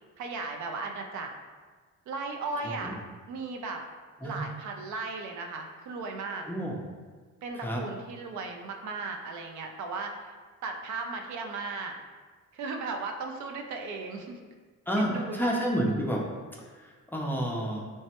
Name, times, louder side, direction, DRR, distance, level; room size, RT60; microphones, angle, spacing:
voice 1, 0.2-1.3 2.1-3.0 3.3-3.8 4.2-6.4 7.4-10.3 10.6-11.9 12.5-14.4 15.0-15.5, right 3 dB, 70° right, 3 dB, 0.4 m, -36 dB
voice 2, 14.9-16.2 17.1-17.8, equal, 5° left, -2 dB, 0.4 m, -29 dB
3.3 x 2.1 x 2.8 m, 1.4 s
cardioid pair, 90°, 30 cm